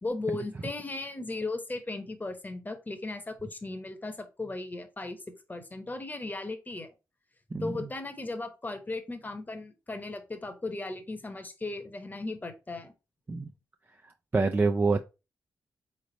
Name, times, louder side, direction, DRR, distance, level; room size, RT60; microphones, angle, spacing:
voice 1, 0.0-5.2 5.5-6.9 7.6-12.9, left 2 dB, 25° left, 1.0 m, -36 dB
voice 2, 7.5-7.9 13.3-13.5 14.0-15.0, right 3 dB, 30° right, 0.4 m, -27 dB
3.9 x 3.3 x 3.9 m
cardioid pair, 60°, 7 cm